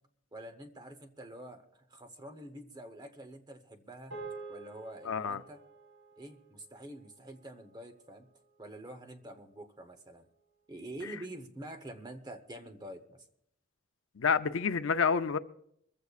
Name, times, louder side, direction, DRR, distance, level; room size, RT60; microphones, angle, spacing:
voice 1, 0.3-4.1 4.5-5.6 6.2-8.3 8.6-10.2 10.7-13.2, right 1 dB, 20° right, 1.0 m, -47 dB
sound 1, 4.1-8.6, right 3 dB, 65° right, 6.5 m, -49 dB
voice 2, 5.0-5.4 14.2-15.4, left 6 dB, 70° left, 0.6 m, -28 dB
23.5 x 15.0 x 2.5 m
head